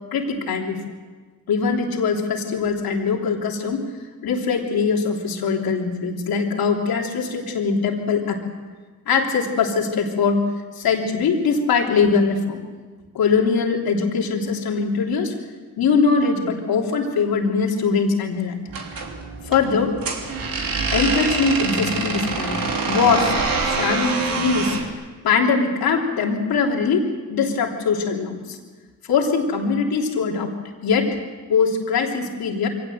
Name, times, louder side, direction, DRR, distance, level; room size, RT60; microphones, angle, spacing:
voice 1, 0.1-0.8 1.5-3.8 4.2-8.4 9.1-10.4 10.7-12.6 13.1-15.3 15.8-18.6 19.4-20.0 20.9-23.4 23.7-24.8 25.2-28.6 29.1-30.5 30.8-31.2 31.5-32.7, left 5 dB, 80° left, 1 dB, 3.3 m, -21 dB
sound 1, 18.7-24.9, right 4 dB, 65° right, 3.2 m, -25 dB
23.5 x 18.0 x 7.9 m, 1.4 s
supercardioid pair, 60°, 36 cm